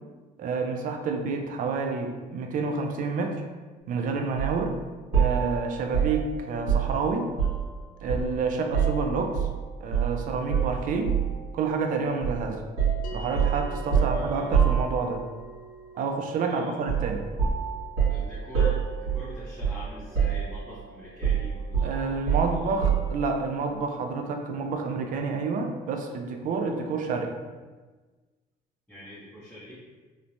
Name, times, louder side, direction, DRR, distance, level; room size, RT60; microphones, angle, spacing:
voice 1, 0.4-3.4 3.9-4.8 5.1-7.3 8.0-9.5 9.8-11.1 11.5-12.6 13.1-15.2 15.9-17.2 21.8-27.3, right 4 dB, 55° right, 4 dB, 0.4 m, -29 dB
sound 1, 4.4-4.6 5.1-7.7 8.1-9.6 9.9-10.1 10.5-11.4 12.2-12.4 12.8-15.3 16.9-17.1 17.4-19.9 20.1-20.8 21.2-23.2, right 7 dB, 90° right, 1.4 m, -26 dB
sound 2, 13.0-23.6, right 4 dB, 60° left, 0.4 m, -49 dB
voice 2, 13.8-14.5 16.4-16.9 18.1-22.8 26.8-27.0 28.9-29.8, left 1 dB, 5° left, -10 dB, 0.6 m, -45 dB
3.1 x 2.1 x 2.5 m, 1.3 s
cardioid pair, 110°, 17 cm